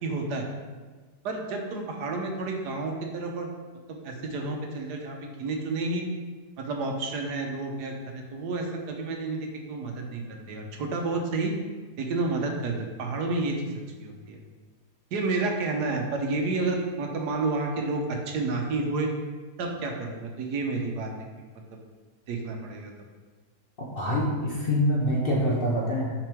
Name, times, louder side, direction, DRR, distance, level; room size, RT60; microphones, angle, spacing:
voice 1, 0.0-0.4 1.2-3.5 3.9-6.1 6.6-11.5 12.0-14.4 15.1-19.1 19.6-21.1 22.3-22.9, right 3 dB, 75° right, 2 dB, 1.3 m, -30 dB
voice 2, 23.9-26.1, equal, 45° left, -4 dB, 0.8 m, -25 dB
5.9 x 5.0 x 3.5 m, 1.4 s
omnidirectional pair, 1.8 m